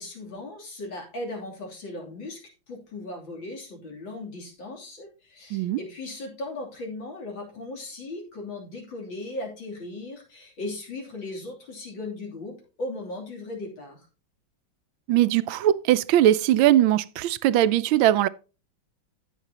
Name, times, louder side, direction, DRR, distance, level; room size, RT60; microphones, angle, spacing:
voice 1, 0.0-2.4 2.7-14.1, left 2 dB, 75° left, 3.8 m, -37 dB
voice 2, 15.1-18.3, right 12 dB, 85° right, 1.4 m, -20 dB
15.5 x 5.9 x 2.8 m
omnidirectional pair, 2.1 m